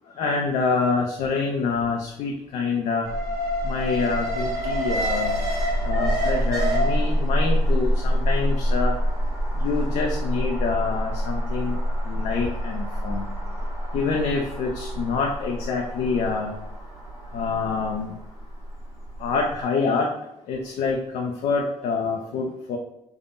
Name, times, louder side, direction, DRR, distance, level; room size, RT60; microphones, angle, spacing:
voice 1, 0.2-3.1 3.6-5.4 5.8-8.9 9.6-11.8 12.1-13.3 13.9-16.5 17.3-18.1 19.2-20.1 20.5-22.8, left 4 dB, 75° left, 0 dB, 0.4 m, -26 dB
Alarm, 3.0-19.2 19.5-19.6, equal, 30° right, 1.1 m, -26 dB
3.4 x 2.1 x 2.5 m, 0.81 s
cardioid pair, 125°, 12 cm